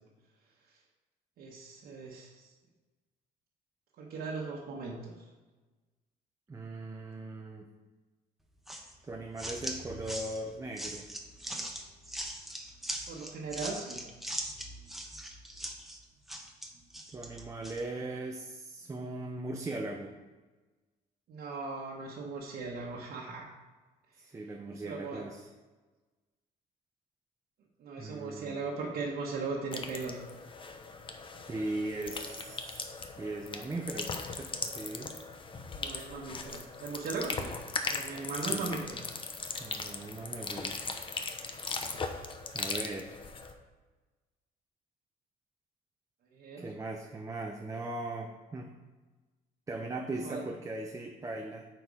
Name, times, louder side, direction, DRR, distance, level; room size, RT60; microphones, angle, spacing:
voice 1, 1.4-2.5 4.0-5.1 13.1-14.0 21.3-23.5 24.8-25.2 27.8-30.2 35.8-37.5 37.9-38.8 46.3-46.7 50.1-50.4, right 4 dB, 65° right, -5 dB, 1.3 m, -38 dB
voice 2, 6.5-7.7 9.0-11.1 17.1-20.1 24.2-25.5 28.0-28.6 31.4-32.9 33.2-35.1 38.5-38.7 39.5-40.8 42.5-43.2 46.6-48.7 49.7-51.7, right 2 dB, 20° right, 2 dB, 0.7 m, -39 dB
sound 1, 8.7-17.8, right 1 dB, ahead, 1.0 m, -41 dB
sound 2, 29.7-43.5, left 4 dB, 30° left, 0.8 m, -39 dB
8.0 x 4.6 x 4.9 m, 1.2 s
cardioid pair, 110°, 17 cm